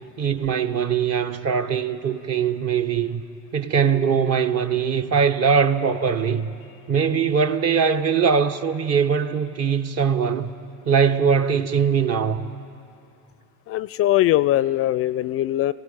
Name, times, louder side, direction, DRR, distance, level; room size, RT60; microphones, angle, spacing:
voice 1, 0.2-3.2 3.5-6.5 6.9-10.5 10.8-12.5, right 6 dB, 45° right, 1.4 m, -21 dB
voice 2, 13.7-15.7, left 14 dB, 40° left, 0.4 m, -21 dB
25.0 x 17.0 x 9.1 m
hypercardioid pair, 85°, 36 cm